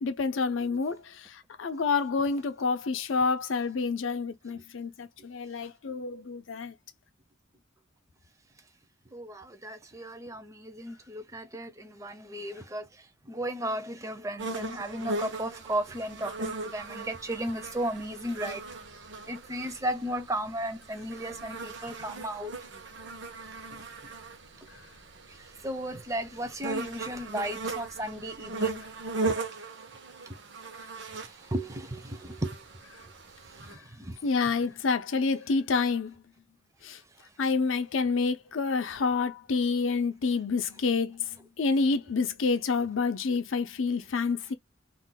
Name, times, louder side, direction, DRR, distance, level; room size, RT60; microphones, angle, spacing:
voice 1, 0.0-6.7 34.2-36.1 36.8-37.0 37.4-44.5, left 4 dB, 85° left, 0.5 m, -28 dB
voice 2, 9.1-18.6 19.3-22.5 23.7-23.9 24.6-24.7 25.3-28.8 31.0-32.6 33.5-34.2, right 1 dB, 15° right, 0.5 m, -35 dB
sound 1, 14.4-33.8, right 3 dB, 65° right, 0.8 m, -38 dB
2.5 x 2.1 x 3.8 m
head